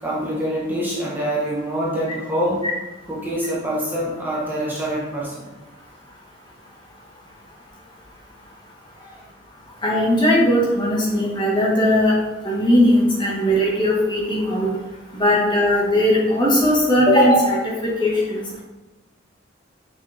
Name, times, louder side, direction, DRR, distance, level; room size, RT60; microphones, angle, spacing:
voice 1, 0.0-2.7 3.1-5.5 9.0-9.2 14.6-14.7, equal, 10° right, -6 dB, 1.4 m, -25 dB
voice 2, 9.8-12.2 12.4-14.7 15.1-18.4, left 1 dB, 25° left, -4 dB, 1.7 m, -18 dB
6.4 x 6.2 x 3.5 m, 1.1 s
head